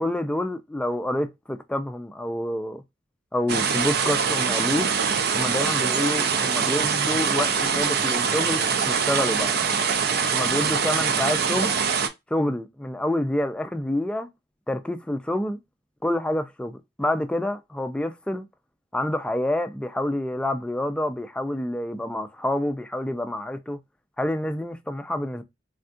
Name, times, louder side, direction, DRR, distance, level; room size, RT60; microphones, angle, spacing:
voice 1, 0.0-2.8 3.3-4.9 5.3-9.6 10.3-11.7 12.3-14.3 14.7-15.6 16.0-18.5 18.9-23.8 24.2-25.4, left 1 dB, 5° left, 0.3 m, -27 dB
sound 1, 3.5-12.1, right 6 dB, 60° right, 0.4 m, -23 dB
3.5 x 2.2 x 2.5 m
head